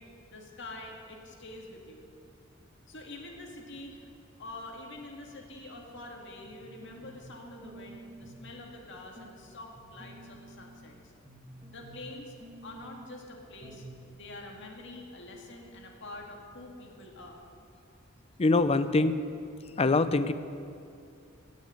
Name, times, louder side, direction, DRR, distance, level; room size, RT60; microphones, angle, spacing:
voice 1, 0.0-2.0 2.9-4.1 4.4-11.0 11.7-12.3 12.6-13.8 14.1-17.4, left 2 dB, 60° left, 1 dB, 2.1 m, -46 dB
sound 1, 6.4-7.3 7.6-8.5 8.8-9.3 9.8-10.9 11.2-12.1 12.4-13.1 13.6-13.9 14.2-14.3, right 1 dB, 25° right, 1.5 m, -50 dB
voice 2, 18.4-19.2 19.8-20.3, left 3 dB, 30° left, 13 dB, 0.5 m, -24 dB
17.0 x 6.5 x 8.4 m, 2.5 s
head